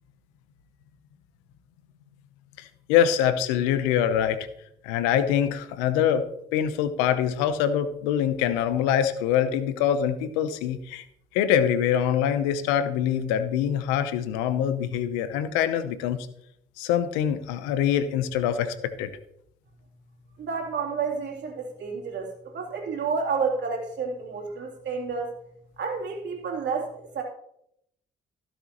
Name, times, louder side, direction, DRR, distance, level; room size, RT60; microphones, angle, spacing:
voice 1, 2.6-4.4 4.8-6.2 6.5-11.0 11.3-16.2 16.8-19.1, left 9 dB, 90° left, 12 dB, 0.8 m, -24 dB
voice 2, 20.4-25.3 25.8-27.2, right 5 dB, 65° right, -1 dB, 3.1 m, -30 dB
16.0 x 6.8 x 3.0 m, 0.75 s
hypercardioid pair, 45°, 19 cm